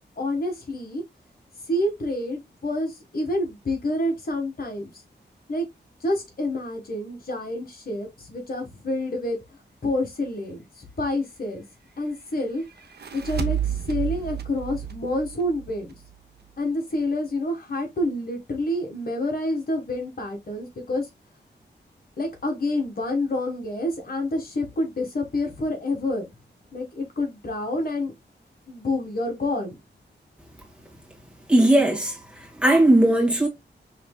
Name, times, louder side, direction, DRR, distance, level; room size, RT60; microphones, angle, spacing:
voice 1, 0.2-1.0 1.7-4.9 5.5-5.7 6.0-9.4 9.8-11.6 12.0-12.6 13.1-15.9 16.6-21.1 22.2-26.2 26.7-28.1 28.7-29.8, left 1 dB, 55° left, 1.5 m, -28 dB
sound 1, 12.8-16.1, right 10 dB, 65° right, 0.7 m, -31 dB
voice 2, 31.5-32.1 32.6-33.5, right 1 dB, 5° right, 1.6 m, -17 dB
5.7 x 3.2 x 2.2 m
wide cardioid pair, 100°, 19 cm